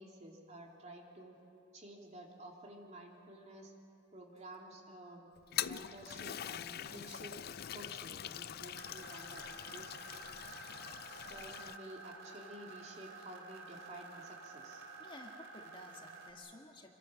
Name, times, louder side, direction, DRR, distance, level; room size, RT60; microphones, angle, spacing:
voice 1, 0.0-1.4 1.7-3.7 4.1-5.3 5.6-7.4 7.7-9.9 11.3-14.8, right 1 dB, 35° right, 0 dB, 3.0 m, -52 dB
Toilet flush, 5.4-11.8, left 10 dB, 55° left, 0.5 m, -43 dB
sound 1, 8.7-16.3, right 4 dB, 90° right, 2.8 m, -51 dB
voice 2, 14.8-16.9, left 2 dB, 25° left, 1 dB, 1.8 m, -53 dB
27.0 x 22.5 x 6.4 m, 2.8 s
head